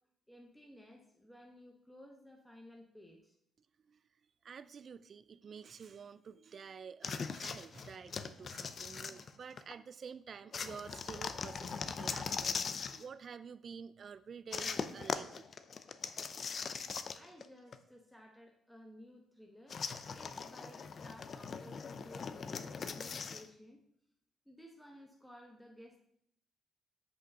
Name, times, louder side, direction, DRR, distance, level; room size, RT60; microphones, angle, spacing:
voice 1, 0.3-3.4 17.1-23.8 24.4-26.0, equal, ahead, 0 dB, 1.0 m, -56 dB
voice 2, 4.4-15.5, right 6 dB, 50° right, 14 dB, 0.3 m, -50 dB
sound 1, 7.0-9.7 10.5-13.0 14.5-17.5 17.7-17.8 19.7-23.5, left 5 dB, 50° left, 0.5 m, -40 dB
6.5 x 5.2 x 5.5 m, 0.69 s
cardioid pair, 90°, 0 cm